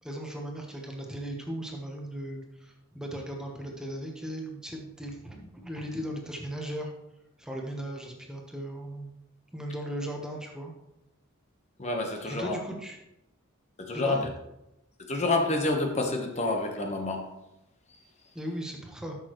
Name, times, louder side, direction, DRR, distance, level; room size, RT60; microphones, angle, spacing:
voice 1, 0.0-6.9 7.4-9.1 9.5-10.7 12.2-13.0 13.9-14.3 18.3-19.2, right 1 dB, 5° right, 0 dB, 1.1 m, -37 dB
voice 2, 11.8-12.6 13.8-14.3 15.0-17.3, left 2 dB, 35° left, 2 dB, 1.1 m, -28 dB
12.5 x 6.5 x 3.1 m, 0.88 s
head